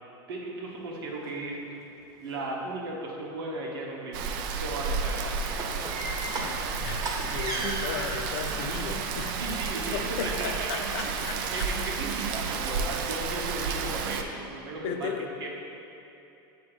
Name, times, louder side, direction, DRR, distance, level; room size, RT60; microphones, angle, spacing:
voice 1, 0.3-1.8 2.2-4.3 4.6-5.5 9.4-15.5, right 2 dB, 90° right, -2 dB, 1.1 m, -36 dB
sound 1, 0.8-0.9 1.2-1.3 1.7-2.3 5.0-8.6 9.1-10.2 11.0-11.1 11.5-11.7 12.0-12.1 12.5-12.6 13.0-13.1, right 1 dB, 30° right, 1.0 m, -37 dB
Rain, 4.1-14.2, right 5 dB, 65° right, 0.4 m, -31 dB
voice 2, 6.8-9.3 9.9-11.4 14.8-15.3, left 7 dB, 65° left, 6 dB, 0.5 m, -35 dB
7.4 x 2.8 x 4.9 m, 2.9 s
supercardioid pair, 120°, 12 cm